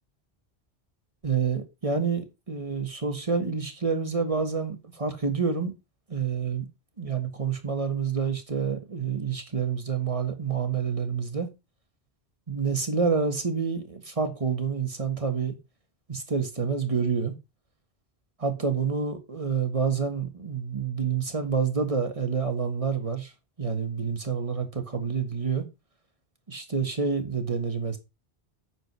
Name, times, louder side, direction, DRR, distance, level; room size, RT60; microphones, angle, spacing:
voice 1, 1.2-5.7 6.1-6.7 7.0-11.5 12.5-15.6 16.1-17.4 18.4-23.3 23.6-25.6 26.5-28.0, right 5 dB, 35° right, 1.7 m, -28 dB
8.9 x 4.7 x 6.2 m
omnidirectional pair, 1.1 m